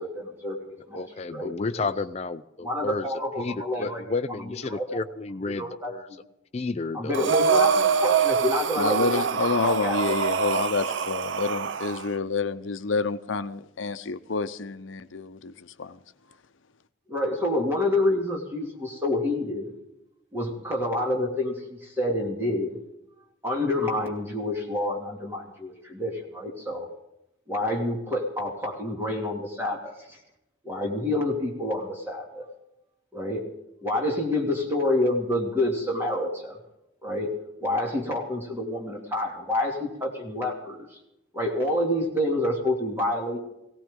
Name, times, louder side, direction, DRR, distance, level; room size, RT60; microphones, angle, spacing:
voice 1, 0.0-1.0 1.3-1.5 1.8-1.9 2.6-4.0 4.4-5.0 5.5-6.2 6.9-9.2 9.6-10.0 17.1-19.7 20.3-22.8 23.4-26.9 27.5-30.2 30.6-32.4 33.1-33.4 33.8-36.6 37.0-37.3 37.6-40.9 41.3-43.4, left 1 dB, 10° right, 2.4 m, -28 dB
voice 2, 0.9-3.1 3.4-6.1 6.5-7.2 10.1-10.2, left 3 dB, 35° left, 0.4 m, -31 dB
Breathing, 7.1-12.1, right 6 dB, 75° right, 0.6 m, -25 dB
voice 3, 8.8-16.0, left 4 dB, 85° left, 0.7 m, -28 dB
18.0 x 17.5 x 3.7 m
head